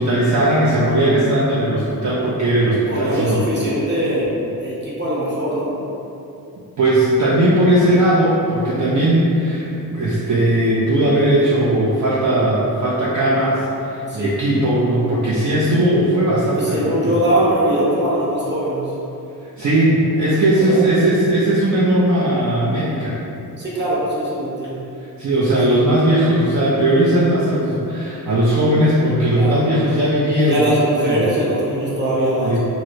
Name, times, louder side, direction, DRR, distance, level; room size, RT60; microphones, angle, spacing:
voice 1, 0.0-3.4 6.8-17.2 19.6-23.2 25.2-31.3 32.4-32.6, right 1 dB, 50° right, -7 dB, 0.5 m, -18 dB
voice 2, 2.9-4.3 4.6-5.7 14.1-14.3 16.5-18.9 20.6-20.8 23.6-24.8 25.7-25.8 29.3-29.6 30.4-32.6, right 1 dB, 30° right, -8 dB, 0.9 m, -21 dB
2.9 x 2.6 x 2.9 m, 2.7 s
wide cardioid pair, 90°, 37 cm